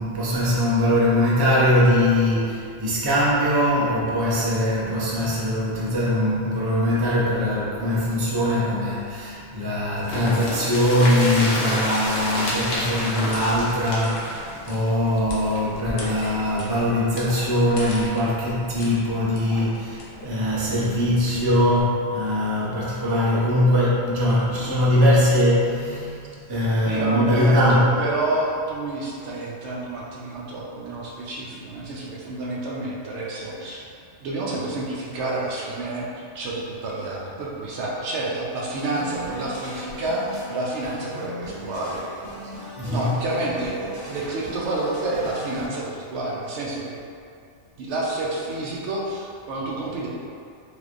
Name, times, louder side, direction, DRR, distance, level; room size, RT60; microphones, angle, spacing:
voice 1, 0.0-27.9 42.8-43.3, left 1 dB, 30° right, -7 dB, 0.5 m, -21 dB
sound 1, 10.0-15.8 16.1-16.2 16.5-16.6, left 1 dB, 90° left, 1.1 m, -29 dB
sound 2, 12.0-21.8, left 1 dB, 55° left, 0.7 m, -40 dB
voice 2, 26.9-33.9 34.2-36.1 36.3-42.0 42.9-47.0 47.8-50.1, right 2 dB, 70° right, -4 dB, 0.8 m, -29 dB
sound 3, 38.7-45.7, left 1 dB, 15° left, 0.8 m, -38 dB
3.4 x 3.1 x 2.4 m, 2.4 s
omnidirectional pair, 1.3 m